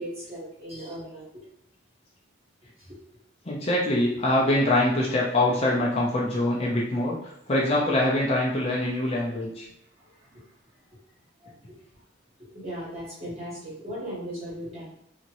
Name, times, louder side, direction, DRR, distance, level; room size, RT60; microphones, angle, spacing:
voice 1, 0.0-1.4 10.2-10.4 11.4-11.5 12.5-14.9, equal, 30° right, -8 dB, 1.4 m, -37 dB
voice 2, 3.5-9.7, left 1 dB, 30° left, -5 dB, 0.5 m, -24 dB
2.8 x 2.6 x 2.9 m, 0.75 s
head